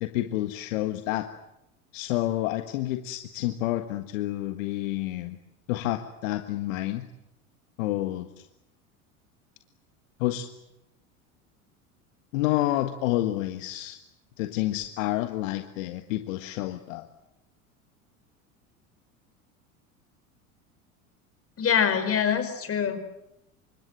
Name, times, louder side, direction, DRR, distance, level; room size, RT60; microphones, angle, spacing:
voice 1, 0.0-1.3 1.9-5.4 5.7-7.1 7.8-8.4 10.2-10.5 12.3-14.0 14.4-17.1, left 15 dB, 60° left, 8 dB, 1.7 m, -29 dB
voice 2, 21.6-23.1, left 7 dB, 30° left, 9 dB, 5.4 m, -24 dB
28.0 x 25.5 x 7.8 m, 0.88 s
figure-of-eight pair, 75°, 43 cm